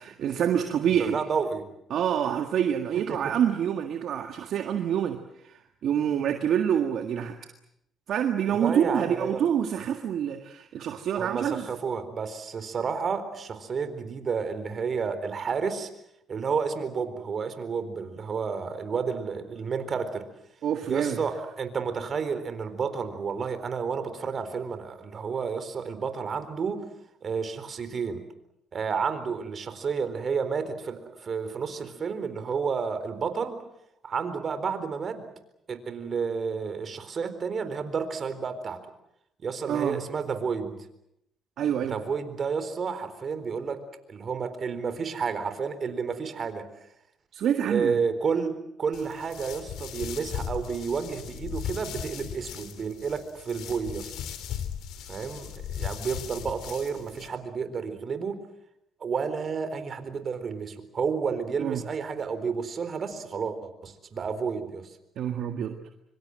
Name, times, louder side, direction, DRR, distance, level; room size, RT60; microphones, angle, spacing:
voice 1, 0.0-1.2 1.9-7.4 8.1-11.7 20.6-21.2 39.7-40.0 41.6-42.0 47.3-48.0 61.6-61.8 65.2-65.8, right 9 dB, 70° right, 6 dB, 1.7 m, -27 dB
voice 2, 1.0-1.6 3.1-3.3 8.5-9.4 11.2-15.9 16.3-20.2 20.9-26.9 27.2-28.2 28.7-33.6 34.0-35.2 35.7-38.8 39.4-40.7 41.9-43.8 44.1-46.6 47.6-48.5 48.8-54.1 55.1-58.4 59.0-65.0, right 5 dB, 50° right, 10 dB, 4.1 m, -31 dB
sound 1, 48.9-57.3, left 9 dB, 80° left, 3.0 m, -37 dB
25.0 x 24.5 x 7.8 m, 0.79 s
supercardioid pair, 70°, 0 cm